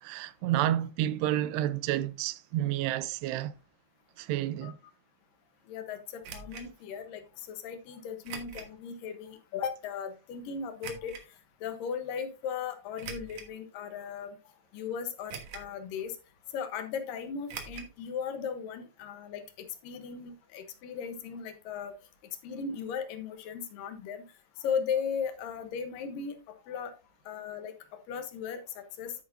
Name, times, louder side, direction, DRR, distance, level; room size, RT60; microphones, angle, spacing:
voice 1, 0.0-3.6 4.2-4.8, right 13 dB, 90° right, 2.7 m, -30 dB
voice 2, 5.7-11.2 11.6-14.4 14.7-16.2 16.5-21.9 22.4-24.3 24.6-26.4 26.7-26.9 27.3-29.1, left 6 dB, 70° left, 2.3 m, -37 dB
sound 1, 6.2-6.7 8.2-8.7 9.3-9.4 10.8-11.2 12.9-13.5 14.2-14.3 15.3-16.0 17.5-17.9 18.2-18.3 18.6-18.7, right 6 dB, 55° right, 2.0 m, -42 dB
10.5 x 8.5 x 2.6 m
omnidirectional pair, 4.7 m